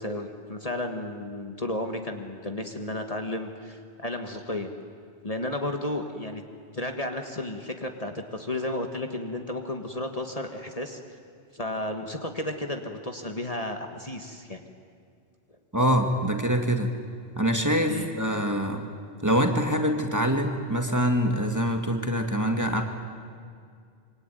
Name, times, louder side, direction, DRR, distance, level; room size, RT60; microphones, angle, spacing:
voice 1, 0.0-4.7 5.2-6.4 6.7-11.0 11.5-14.6 17.9-18.1, left 1 dB, 35° left, 4 dB, 1.7 m, -33 dB
voice 2, 15.7-16.9 17.4-18.9 19.2-22.8, equal, 15° right, 3 dB, 2.1 m, -24 dB
26.0 x 24.0 x 9.3 m, 2.2 s
omnidirectional pair, 1.1 m